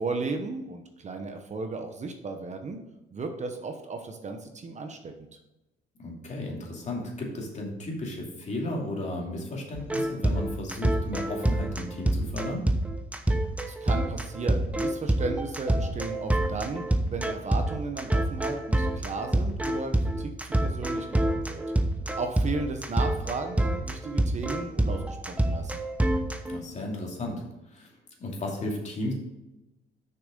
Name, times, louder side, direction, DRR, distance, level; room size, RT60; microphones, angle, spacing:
voice 1, 0.0-2.8 3.1-5.1 13.7-21.6 22.1-25.8, right 3 dB, 35° right, 5 dB, 1.0 m, -35 dB
voice 2, 6.0-12.7 26.5-27.3 27.7-27.9 28.2-29.1, left 1 dB, 35° left, -1 dB, 2.6 m, -34 dB
sound 1, 9.8-26.6, right 1 dB, 5° right, 0.9 m, -26 dB
6.7 x 6.0 x 5.2 m, 0.96 s
cardioid pair, 100°, 20 cm